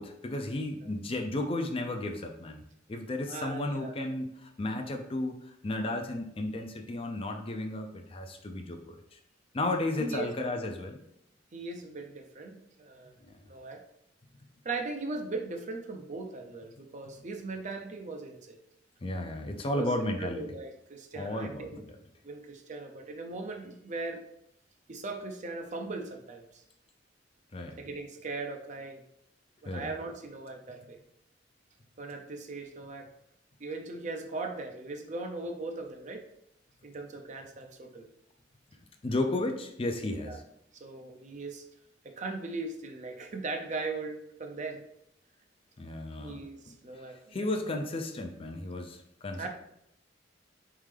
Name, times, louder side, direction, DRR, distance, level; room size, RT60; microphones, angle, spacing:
voice 1, 0.0-2.6 2.9-9.2 9.5-11.0 13.2-13.3 19.0-20.4 21.1-22.0 27.5-27.8 29.6-29.9 39.0-40.4 45.8-49.5, left 2 dB, 30° left, 4 dB, 0.5 m, -34 dB
voice 2, 3.3-3.9 10.0-10.3 11.5-13.1 13.5-13.8 14.6-18.6 19.7-21.8 22.2-24.2 24.9-26.6 27.7-29.0 29.6-31.0 32.0-33.1 33.6-36.3 36.8-38.1 40.3-40.4 40.7-41.6 42.0-44.8 46.2-47.8 49.4-49.5, right 3 dB, 40° right, 4 dB, 0.6 m, -39 dB
4.2 x 3.6 x 3.3 m, 0.76 s
head